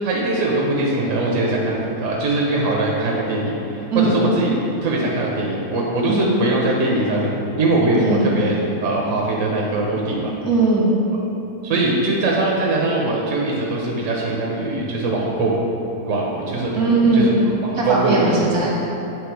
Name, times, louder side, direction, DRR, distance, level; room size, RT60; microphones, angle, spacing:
voice 1, 0.0-4.5 4.8-7.3 7.6-10.3 11.6-15.5 16.1-16.7 17.1-17.3 17.6-18.3, right 2 dB, 65° right, -3 dB, 1.1 m, -21 dB
voice 2, 3.9-4.2 6.1-6.3 8.0-8.3 10.4-11.0 16.7-17.4 17.7-18.8, right 3 dB, 85° right, -4 dB, 1.8 m, -19 dB
8.6 x 3.6 x 4.6 m, 2.9 s
omnidirectional pair, 1.6 m